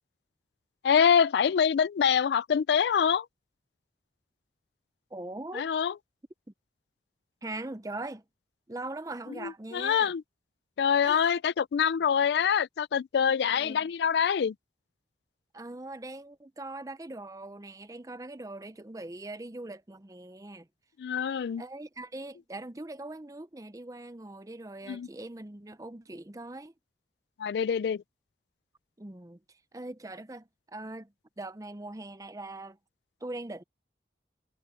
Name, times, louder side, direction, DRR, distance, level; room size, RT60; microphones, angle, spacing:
voice 1, 0.8-3.3 5.5-5.9 9.4-10.2 10.8-14.6 21.0-21.6 24.9-25.1 27.4-28.0, left 7 dB, 70° left, 0.3 m, -25 dB
voice 2, 5.1-5.7 7.4-8.2 8.7-10.1 11.0-11.3 13.4-13.8 15.5-20.7 21.6-26.7 29.0-32.8 33.2-33.6, right 2 dB, 20° right, 0.6 m, -41 dB
head